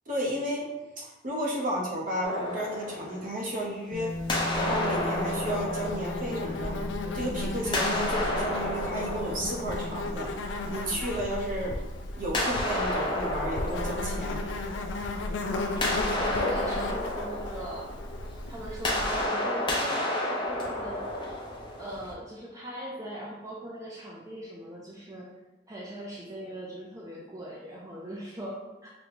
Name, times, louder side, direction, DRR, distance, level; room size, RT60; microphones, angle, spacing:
voice 1, 0.1-0.7 1.0-4.1 4.5-6.8 7.1-10.3 10.7-11.8 12.1-14.4, equal, 50° right, -2 dB, 0.8 m, -32 dB
sound 1, 2.2-3.9 4.3-7.1 7.6-10.5 12.3-15.1 15.4-22.1, left 1 dB, 25° left, 0.7 m, -31 dB
Bass guitar, 3.9-10.2, left 2 dB, ahead, 0.9 m, -39 dB
Insect, 4.1-19.3, left 2 dB, 80° left, 0.4 m, -35 dB
voice 2, 15.4-17.9 18.5-21.0 21.8-25.3 25.7-28.9, equal, 20° right, -5 dB, 0.5 m, -40 dB
5.1 x 2.2 x 3.0 m, 1.0 s
head